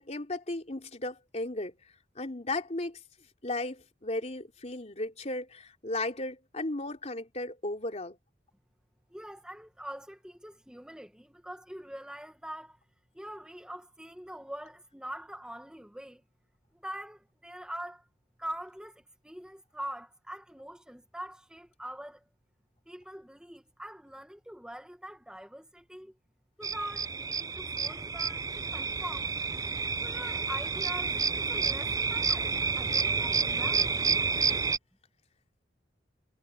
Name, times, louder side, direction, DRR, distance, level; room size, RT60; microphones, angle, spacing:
voice 1, 0.0-1.7 2.2-3.0 3.4-8.2, left 2 dB, 40° left, 3.4 m, -35 dB
voice 2, 9.1-12.8 13.1-16.2 16.7-18.1 18.4-22.2 22.8-26.2 26.6-29.3 30.0-34.2, right 1 dB, 5° right, 1.7 m, -43 dB
sound 1, 26.6-34.8, right 5 dB, 20° right, 0.5 m, -30 dB
head